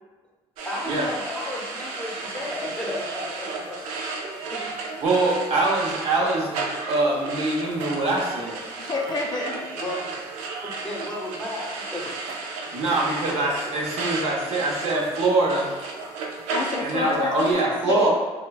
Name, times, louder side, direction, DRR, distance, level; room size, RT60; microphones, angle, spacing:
voice 1, 0.6-4.8 5.7-5.8 9.7-10.1 10.6-12.2 17.0-17.1, left 1 dB, 10° left, -4 dB, 0.9 m, -34 dB
sound 1, 0.6-17.5, right 3 dB, 80° right, 0.4 m, -34 dB
voice 2, 5.0-8.6 12.7-15.7 16.8-18.1, right 2 dB, 55° right, -3 dB, 0.8 m, -24 dB
voice 3, 8.7-9.7 16.5-18.1, left 3 dB, 35° left, 1 dB, 0.4 m, -27 dB
3.1 x 2.1 x 2.3 m, 1.3 s
supercardioid pair, 70°, 13 cm